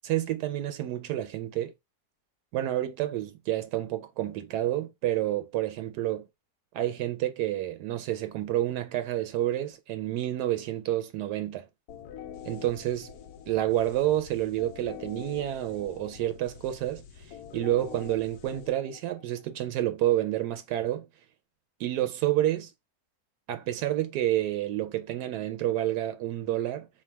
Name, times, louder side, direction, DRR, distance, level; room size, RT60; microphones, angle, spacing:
voice 1, 0.0-1.7 2.5-6.3 6.7-11.7 12.5-13.1 13.5-17.0 17.5-21.1 21.8-22.7 23.5-26.9, right 13 dB, 85° right, 1.2 m, -29 dB
sound 1, 11.9-19.5, left 9 dB, 70° left, 1.1 m, -45 dB
3.4 x 2.2 x 4.4 m
omnidirectional pair, 1.7 m